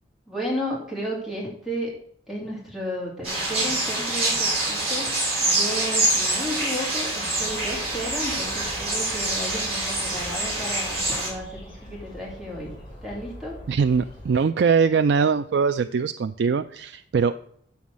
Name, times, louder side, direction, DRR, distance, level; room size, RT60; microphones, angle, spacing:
voice 1, 0.3-1.9 2.3-5.1 5.4-13.6, equal, ahead, -4 dB, 2.5 m, -33 dB
sound 1, 3.2-11.3, right 2 dB, 35° right, 4.7 m, -25 dB
sound 2, 7.3-14.3, left 1 dB, 25° left, 4.8 m, -43 dB
voice 2, 13.7-17.4, right 5 dB, 65° right, 9 dB, 0.4 m, -22 dB
8.1 x 7.1 x 6.2 m, 0.66 s
head